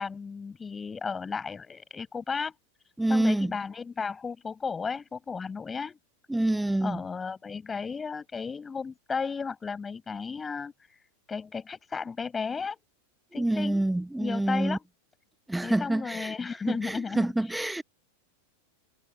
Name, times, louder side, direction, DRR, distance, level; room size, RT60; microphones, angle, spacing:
voice 1, 0.0-2.5 3.1-6.0 6.8-11.0 11.3-12.8 13.3-13.8 14.1-14.8 15.6-17.8, left 5 dB, 15° left, 7.7 m, -34 dB
voice 2, 3.0-3.5 6.3-7.0 13.3-14.8 15.5-16.3 16.7-17.8, right 1 dB, 5° right, 1.1 m, -27 dB
figure-of-eight pair, 90°, 0 cm